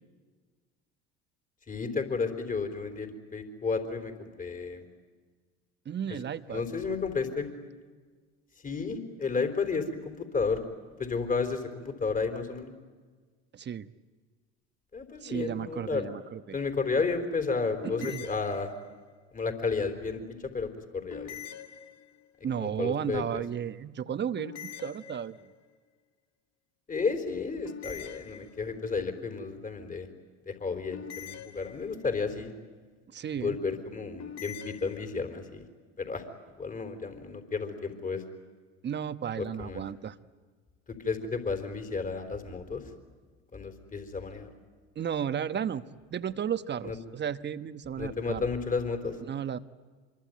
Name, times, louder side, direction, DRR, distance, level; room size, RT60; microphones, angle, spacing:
voice 1, 1.7-4.8 6.5-7.5 8.6-10.6 11.0-12.7 14.9-16.1 16.5-18.7 19.3-20.2 20.5-21.4 22.6-23.4 26.9-30.1 30.5-32.5 33.3-35.6 36.0-36.2 36.6-38.2 39.4-39.8 40.9-42.8 43.5-44.5 46.8-46.9 48.0-49.2, left 4 dB, 25° left, 6 dB, 3.9 m, -32 dB
voice 2, 5.8-6.6 13.5-13.9 15.2-16.6 17.8-18.2 22.4-25.5 33.1-33.6 38.8-40.2 44.9-45.8 46.1-48.5 49.2-49.6, right 8 dB, 35° right, 12 dB, 1.1 m, -34 dB
sound 1, 17.8-19.1 21.1-22.4 24.4-25.7 27.6-28.9 30.9-32.2 34.2-35.1, left 9 dB, 55° left, 1.8 m, -44 dB
26.0 x 23.0 x 9.3 m, 1.5 s
hypercardioid pair, 75°, 32 cm